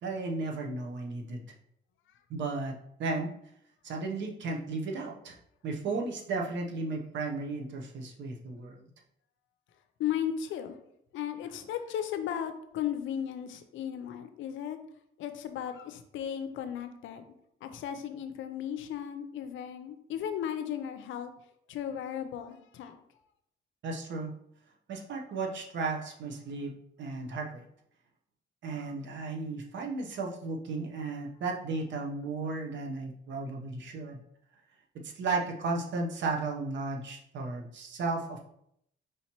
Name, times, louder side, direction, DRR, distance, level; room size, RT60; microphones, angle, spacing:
voice 1, 0.0-1.4 2.3-3.3 3.8-5.4 5.6-8.9 23.8-24.3 24.9-26.7 27.0-27.6 28.6-34.2 34.9-38.5, right 3 dB, 65° right, 1 dB, 0.8 m, -34 dB
voice 2, 10.0-10.8 11.1-14.8 15.2-17.2 17.6-21.3 21.7-23.0, left 9 dB, 75° left, 9 dB, 0.5 m, -35 dB
4.8 x 2.9 x 2.9 m, 0.74 s
cardioid pair, 90°, 20 cm